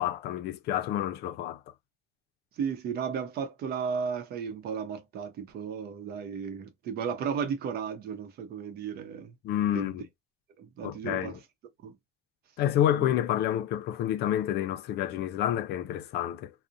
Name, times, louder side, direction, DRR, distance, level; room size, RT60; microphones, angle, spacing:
voice 1, 0.0-1.6 9.4-10.0 10.8-11.4 12.6-16.5, left 11 dB, 75° left, 0.4 m, -29 dB
voice 2, 2.6-9.3 9.7-9.9 10.6-11.4 11.8-12.0 12.9-13.2, right 6 dB, 65° right, 0.7 m, -34 dB
2.5 x 2.1 x 2.5 m
cardioid pair, 110°, 17 cm